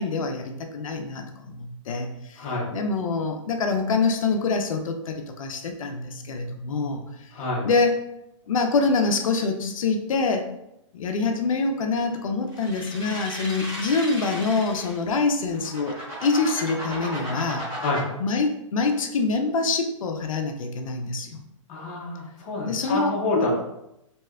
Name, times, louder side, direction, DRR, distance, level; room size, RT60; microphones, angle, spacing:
voice 1, 0.0-7.3 7.6-8.0 8.5-10.5 10.9-17.8 18.2-21.4 22.6-23.5, left 4 dB, 75° left, 5 dB, 0.4 m, -25 dB
voice 2, 7.3-7.6 17.8-18.0 21.7-23.5, left 2 dB, 20° left, -4 dB, 0.6 m, -27 dB
sound 1, 12.5-15.0 15.5-18.0, equal, 15° right, 1.2 m, -35 dB
3.2 x 2.7 x 2.3 m, 0.85 s
hypercardioid pair, 170°, 17 cm